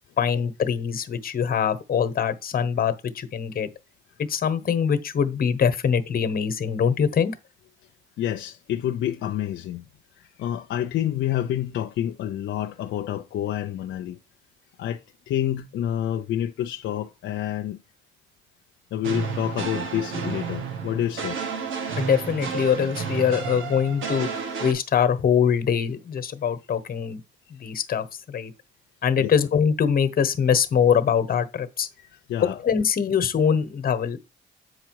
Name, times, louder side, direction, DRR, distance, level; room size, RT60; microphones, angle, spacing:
voice 1, 0.2-3.7 4.2-7.3 22.0-27.2 27.6-28.5 29.0-31.9 32.4-34.2, left 7 dB, 45° left, 1.1 m, -23 dB
voice 2, 8.2-9.9 10.2-14.2 14.8-15.0 15.3-17.8 18.9-21.4 29.2-29.3 32.0-32.6, left 11 dB, 75° left, 0.6 m, -28 dB
sound 1, 19.0-24.7, right 6 dB, 80° right, 1.5 m, -31 dB
7.9 x 4.9 x 4.7 m
cardioid pair, 90°, 20 cm